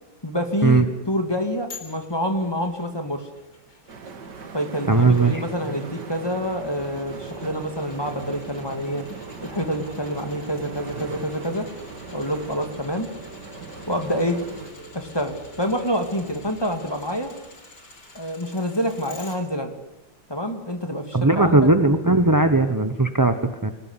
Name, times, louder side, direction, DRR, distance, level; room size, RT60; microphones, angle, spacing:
voice 1, 0.2-3.3 4.5-9.1 9.4-11.7 12.1-13.1 13.9-14.4 14.9-17.3 18.1-19.7 20.3-21.6, equal, 10° left, 5 dB, 2.6 m, -27 dB
sound 1, 1.7-19.4 19.8-19.9, left 3 dB, 60° left, 4.6 m, -49 dB
sound 2, 3.9-14.7, right 5 dB, 60° right, 2.3 m, -39 dB
voice 2, 4.9-5.4 21.1-23.7, right 2 dB, 15° right, 8 dB, 0.8 m, -18 dB
sound 3, 5.8-17.4, equal, 40° right, 6.4 m, -46 dB
26.0 x 17.0 x 10.0 m, 0.96 s
omnidirectional pair, 2.1 m